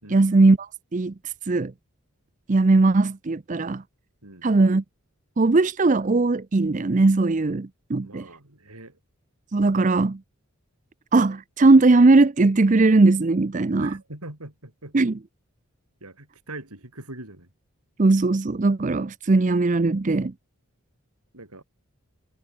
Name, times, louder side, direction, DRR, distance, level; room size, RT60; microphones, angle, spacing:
voice 1, 0.1-1.1 1.5-1.7 2.5-3.8 4.4-4.8 5.4-8.2 9.5-10.2 11.1-13.9 14.9-15.1 18.0-20.3, right 3 dB, 35° right, 0.5 m, -19 dB
voice 2, 8.0-9.0 13.8-15.0 16.0-17.5 21.3-21.6, right 2 dB, 85° right, 5.7 m, -42 dB
head